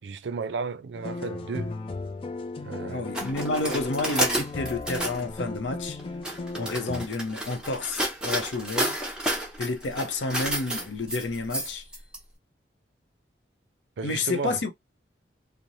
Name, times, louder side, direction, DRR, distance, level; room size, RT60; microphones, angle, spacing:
voice 1, 0.0-1.8 2.6-3.1 14.0-14.6, right 5 dB, 80° right, 0.4 m, -33 dB
sound 1, 0.9-7.1, left 3 dB, 30° left, 0.3 m, -36 dB
voice 2, 2.9-6.0 6.6-9.0 9.6-11.8 14.0-14.7, left 3 dB, 85° left, 0.6 m, -30 dB
sound 2, 3.1-5.2 6.0-12.2, right 1 dB, 5° right, 0.7 m, -31 dB
2.6 x 2.0 x 3.0 m
head